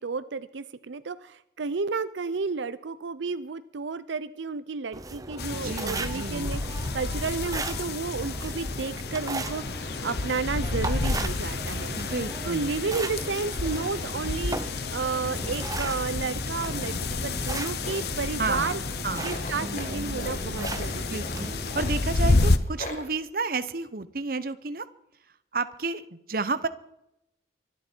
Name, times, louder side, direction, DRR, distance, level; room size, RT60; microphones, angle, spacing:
voice 1, 0.0-11.9 12.5-18.8 19.2-21.2, right 4 dB, 85° right, 14 dB, 0.6 m, -32 dB
sound 1, 4.9-22.1, right 2 dB, 20° right, 0.8 m, -37 dB
sound 2, 5.4-22.6, left 3 dB, 60° left, 0.9 m, -30 dB
voice 2, 5.5-6.6 11.9-12.7 18.4-18.8 19.0-19.4 21.0-21.5 21.7-24.9 25.5-26.7, right 3 dB, 50° right, 13 dB, 0.8 m, -31 dB
Tools, 17.8-23.1, left 1 dB, 40° left, 2.2 m, -40 dB
24.5 x 11.5 x 4.5 m, 0.82 s
head